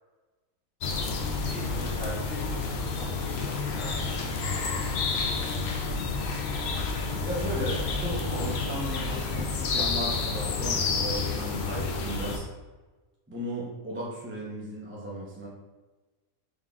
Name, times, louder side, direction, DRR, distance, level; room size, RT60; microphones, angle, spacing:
sound 1, 0.8-12.4, left 4 dB, 70° left, 0.6 m, -30 dB
voice 1, 1.3-5.1, right 1 dB, 60° right, -8 dB, 2.0 m, -43 dB
voice 2, 7.2-12.5 13.3-15.5, right 1 dB, 15° right, -5 dB, 0.4 m, -35 dB
3.9 x 3.6 x 2.3 m, 1.2 s
omnidirectional pair, 1.6 m